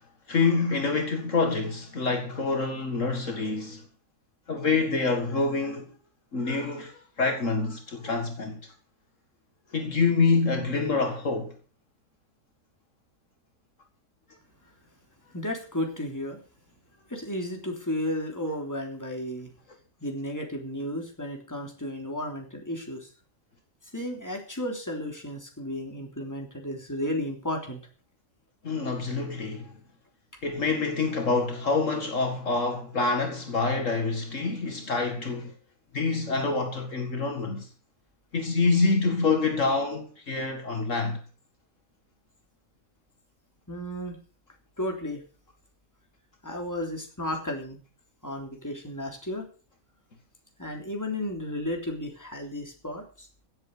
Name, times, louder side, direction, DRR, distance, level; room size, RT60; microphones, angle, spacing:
voice 1, 0.3-3.8 4.5-5.9 6.3-6.9 7.2-8.6 9.7-11.5 28.6-29.7 30.4-35.5 35.9-37.7 38.3-41.2, left 4 dB, 65° left, 2.3 m, -26 dB
voice 2, 15.3-16.4 17.1-19.5 20.0-23.1 23.9-27.8 43.7-44.2 44.8-45.2 46.4-47.8 48.2-49.5 50.6-53.3, left 1 dB, 10° left, 3.4 m, -33 dB
16.5 x 8.0 x 6.6 m
omnidirectional pair, 1.4 m